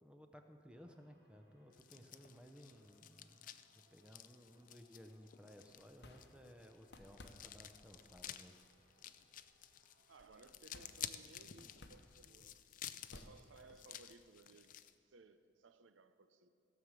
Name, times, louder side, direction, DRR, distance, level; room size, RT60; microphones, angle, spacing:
voice 1, 0.0-8.6, equal, 5° right, 0.6 m, -59 dB
sound 1, 0.7-10.5, right 1 dB, 65° right, 3.6 m, -75 dB
sound 2, 1.7-14.9, left 11 dB, 45° left, 0.4 m, -53 dB
sound 3, 5.6-14.0, left 2 dB, 60° left, 0.9 m, -62 dB
voice 2, 10.1-16.5, right 3 dB, 90° right, 0.6 m, -62 dB
16.5 x 6.4 x 7.4 m
head